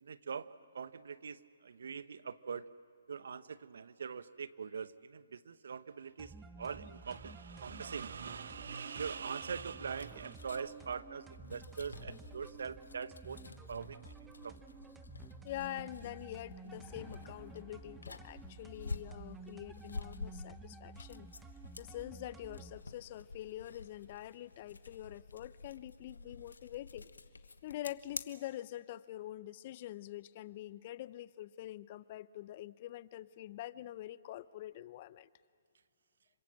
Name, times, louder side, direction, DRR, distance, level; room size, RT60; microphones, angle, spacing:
voice 1, 0.0-2.7 3.1-13.4 13.7-14.0 14.4-14.5, right 6 dB, 70° right, 15 dB, 0.9 m, -43 dB
sound 1, 6.2-22.8, right 4 dB, 10° right, 1.1 m, -53 dB
sound 2, 9.4-28.2, left 3 dB, 90° left, 1.3 m, -50 dB
voice 2, 15.4-21.3 21.8-27.1 27.6-35.3, left 14 dB, 40° left, 18 dB, 0.7 m, -45 dB
Thunder / Rain, 15.9-25.0, left 2 dB, 10° left, 3.9 m, -64 dB
27.0 x 25.0 x 7.5 m, 2.2 s
hypercardioid pair, 140°, 0 cm